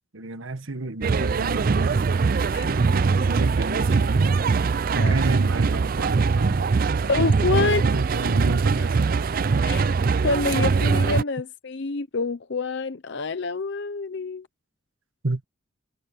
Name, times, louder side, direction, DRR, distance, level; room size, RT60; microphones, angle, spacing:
voice 1, 0.1-2.0 2.6-4.5 4.9-7.0 7.6-9.1 15.2-15.4, right 2 dB, 75° right, 1.4 m, -31 dB
sound 1, 1.0-11.2, right 4 dB, 45° right, 0.4 m, -22 dB
voice 2, 7.0-7.8 9.6-9.9 10.2-14.5, left 3 dB, 60° left, 0.7 m, -27 dB
head